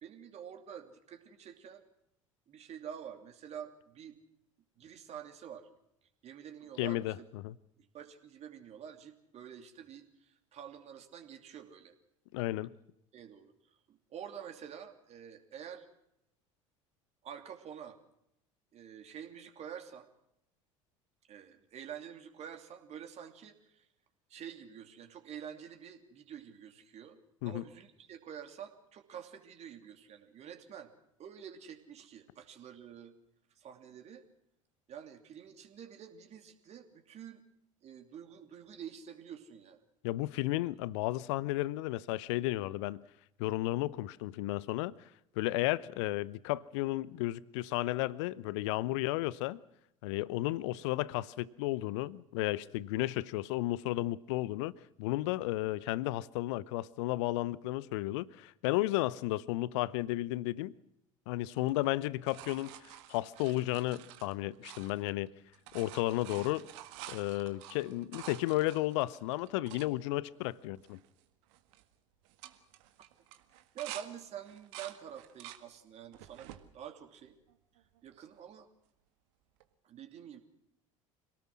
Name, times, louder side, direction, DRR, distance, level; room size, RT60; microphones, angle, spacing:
voice 1, 0.0-1.8 2.5-4.2 4.8-5.7 6.2-7.0 7.9-11.9 13.1-13.5 13.9-15.9 17.2-18.0 18.7-20.1 21.3-23.9 24.3-27.2 27.4-30.9 31.2-33.1 33.5-34.2 34.9-37.4 37.8-39.8 73.7-77.4 78.0-78.7 79.8-80.4, right 9 dB, 40° right, 2.9 m, -48 dB
voice 2, 6.8-7.6 12.3-12.7 27.4-27.6 40.0-43.0 43.4-44.9 45.4-49.6 50.0-54.7 55.0-60.7 61.3-65.3 65.7-66.7 67.1-71.0, left 17 dB, 60° left, 0.8 m, -33 dB
sound 1, 61.6-65.3 65.5-69.9 70.5-70.6 70.8-71.2 71.5-71.8 72.2-74.1 74.4-75.6 76.1-76.6 77.3-78.0 79.6-79.7, right 13 dB, 60° right, 1.8 m, -49 dB
26.0 x 18.5 x 6.2 m
figure-of-eight pair, 65°, 17 cm